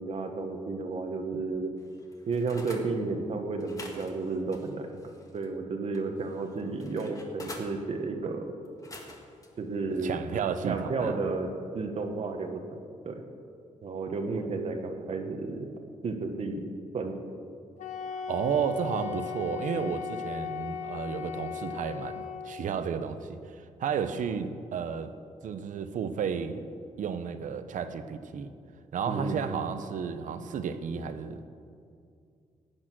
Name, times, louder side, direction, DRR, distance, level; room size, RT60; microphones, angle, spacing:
voice 1, 0.0-1.7 2.3-4.9 5.3-8.5 9.6-10.2 10.6-11.5 11.7-12.6 13.0-13.2 13.8-15.7 16.0-16.6 16.9-17.2 29.1-29.6, right 3 dB, 55° right, 4 dB, 1.4 m, -32 dB
sound 1, 1.8-2.9 3.6-5.5 5.9-7.7 8.6-9.5 10.0-10.2, left 2 dB, 25° left, 1.7 m, -47 dB
voice 2, 10.0-11.2 18.1-25.1 25.4-26.6 27.0-28.5 28.9-31.4, right 7 dB, 80° right, 11 dB, 0.9 m, -32 dB
Wind instrument woodwind instrument, 17.8-22.7, left 7 dB, 70° left, 1.3 m, -37 dB
16.0 x 8.8 x 6.2 m, 2.4 s
wide cardioid pair, 145°, 13 cm